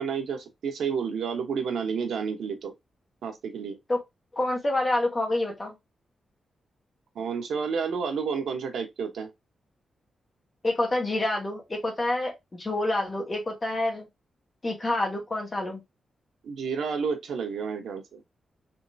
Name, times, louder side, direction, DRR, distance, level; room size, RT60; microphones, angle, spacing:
voice 1, 0.0-2.7 3.2-3.8 7.1-9.3 16.4-18.2, right 6 dB, 80° right, 0.9 m, -30 dB
voice 2, 4.3-5.7 10.6-14.1 14.6-15.8, left 2 dB, 20° left, 1.3 m, -27 dB
3.6 x 3.1 x 2.6 m
wide cardioid pair, 165°, 0 cm